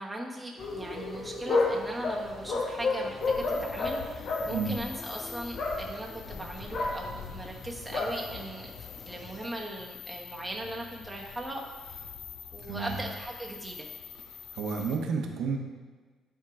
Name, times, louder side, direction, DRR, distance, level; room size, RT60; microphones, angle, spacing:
voice 1, 0.0-12.1 12.5-13.9, right 1 dB, 5° right, -2 dB, 1.2 m, -39 dB
sound 1, 0.6-9.5, left 3 dB, 60° left, 1.1 m, -33 dB
sound 2, 3.2-15.0, left 8 dB, 75° left, 0.6 m, -46 dB
voice 2, 12.7-13.0 14.5-15.6, right 5 dB, 80° right, 1 dB, 0.9 m, -31 dB
10.0 x 3.7 x 4.9 m, 1.4 s
cardioid pair, 125°, 0 cm